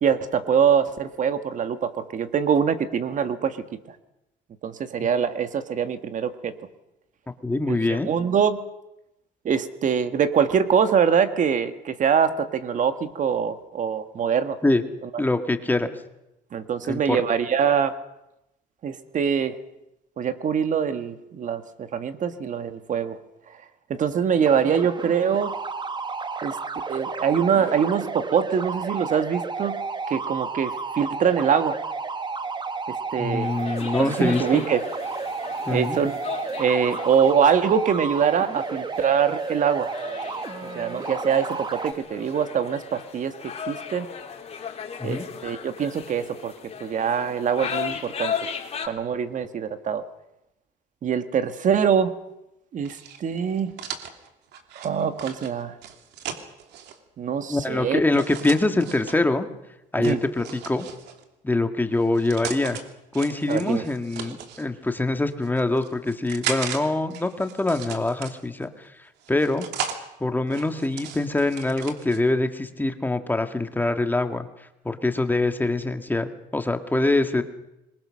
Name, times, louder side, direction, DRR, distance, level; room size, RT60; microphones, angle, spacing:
voice 1, 0.0-3.6 4.6-6.5 7.7-8.6 9.5-14.6 16.5-18.0 18.8-19.6 20.2-21.6 21.9-23.2 23.9-25.5 26.4-26.6 26.9-29.8 30.1-31.8 32.9-33.5 34.0-34.8 35.7-36.2 36.6-39.9 40.8-43.3 43.7-44.1 45.0-46.5 46.8-48.3 48.9-50.0 51.0-52.1 52.7-53.7 54.8-55.7 57.2-58.0 60.0-60.2 63.5-63.8, right 7 dB, 50° right, 10 dB, 1.7 m, -23 dB
voice 2, 7.4-8.1 14.6-14.8 15.2-15.9 16.8-17.2 33.2-34.6 35.7-36.0 45.0-45.3 57.5-59.5 59.9-60.9 61.4-62.8 63.1-68.9 69.3-69.7 70.2-74.5 74.9-77.4, left 2 dB, 10° left, 7 dB, 1.9 m, -24 dB
sound 1, 24.4-41.9, right 4 dB, 25° right, 1.5 m, -32 dB
sound 2, 33.4-48.9, left 7 dB, 40° left, 3.5 m, -36 dB
sound 3, 52.8-57.0 58.1-59.2 60.0-61.2 62.0-62.8 63.1-64.7 65.3-66.8 67.1-68.6 69.2-70.0 70.5-72.2, right 8 dB, 85° right, 3.0 m, -36 dB
26.0 x 22.5 x 6.5 m, 0.89 s
cardioid pair, 110°, 17 cm